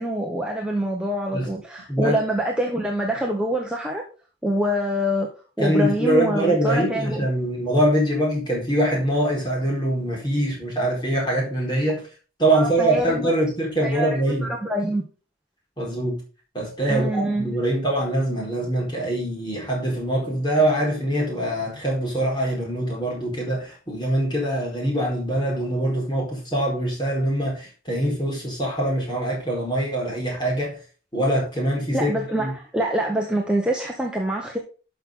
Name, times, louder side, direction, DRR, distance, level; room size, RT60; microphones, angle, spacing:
voice 1, 0.0-4.0 4.4-5.3 5.6-7.3 12.5-13.4 13.8-15.0 16.9-17.6 31.9-34.6, right 1 dB, 5° right, -1 dB, 1.1 m, -25 dB
voice 2, 5.6-12.0 12.4-14.5 15.8-16.2 16.5-30.8 31.1-32.5, right 1 dB, 25° left, -2 dB, 4.7 m, -23 dB
12.0 x 6.0 x 3.8 m, 0.36 s
head